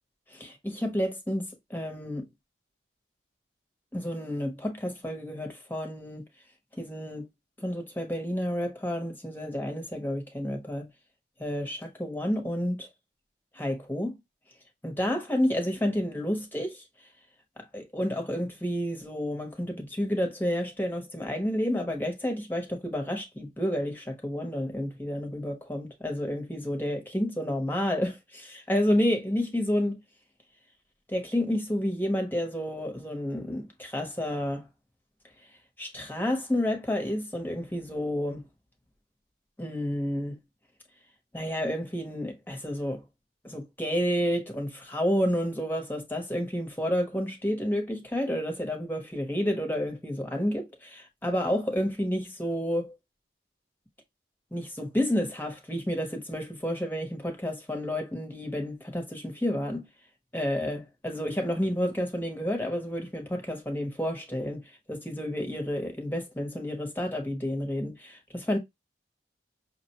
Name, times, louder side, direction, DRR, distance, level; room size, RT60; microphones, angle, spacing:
voice 1, 0.3-2.3 3.9-6.2 6.8-7.3 7.6-10.9 11.4-12.9 13.5-14.2 14.8-16.8 17.6-30.0 31.1-34.7 35.8-38.5 39.6-40.4 41.3-43.0 43.4-52.9 54.5-59.9 60.3-68.6, equal, 10° left, 0.9 m, -30 dB
5.8 x 2.1 x 2.9 m
head